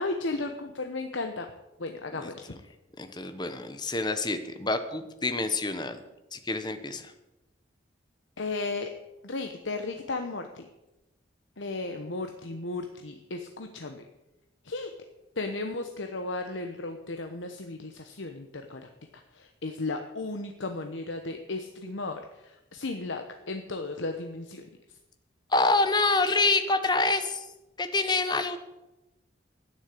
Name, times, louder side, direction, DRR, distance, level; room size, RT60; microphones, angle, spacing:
voice 1, 0.0-1.5 1.8-2.4 8.4-8.9 9.2-10.7 11.6-14.0 14.6-14.9 15.4-18.9 19.3-24.7, left 3 dB, 80° left, 5 dB, 1.1 m, -35 dB
voice 2, 3.0-6.0 6.3-7.1 25.5-27.5 27.8-28.6, left 3 dB, 20° left, 9 dB, 1.1 m, -27 dB
12.0 x 10.0 x 8.4 m, 0.98 s
head